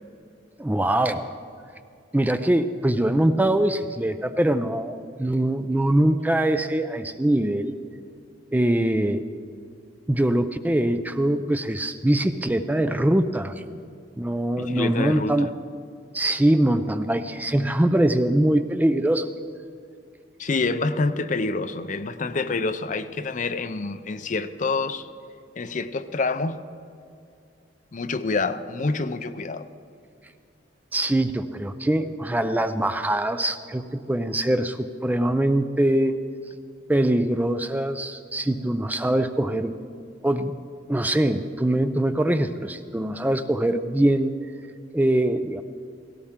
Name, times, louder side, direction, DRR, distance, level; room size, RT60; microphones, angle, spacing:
voice 1, 0.6-1.3 2.1-7.7 8.5-9.3 10.1-13.6 14.2-15.5 16.1-19.3 30.9-36.2 36.9-39.7 40.2-40.6 40.9-44.3 44.9-45.6, right 1 dB, 10° right, 9 dB, 0.4 m, -23 dB
voice 2, 14.6-15.5 20.4-25.1 25.6-26.6 27.9-29.7, left 3 dB, 45° left, 11 dB, 0.6 m, -27 dB
17.5 x 17.0 x 3.7 m, 2.4 s
head